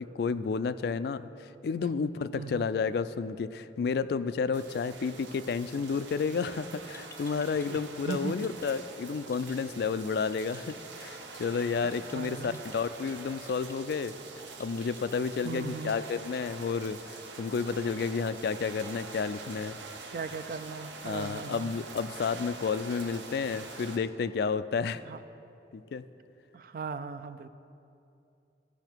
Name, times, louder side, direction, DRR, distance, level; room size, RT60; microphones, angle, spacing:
voice 1, 0.0-14.1 14.6-19.8 21.0-25.0 25.7-26.0, left 5 dB, 60° left, 14 dB, 0.3 m, -31 dB
voice 2, 2.3-2.7 7.5-7.8 8.1-8.5 11.8-12.6 15.4-16.0 20.1-21.7 25.1-25.2 26.5-27.5, right 5 dB, 50° right, 12 dB, 0.4 m, -38 dB
sound 1, 4.5-24.0, right 4 dB, 90° right, 0.9 m, -45 dB
sound 2, 6.9-7.8 8.1-8.7 9.3-9.5 10.2-10.7 11.4-11.6 11.9-12.8 13.5-13.7 14.6-15.2 16.1-16.4, left 4 dB, 15° left, 0.6 m, -53 dB
15.5 x 5.6 x 4.5 m, 2.7 s
head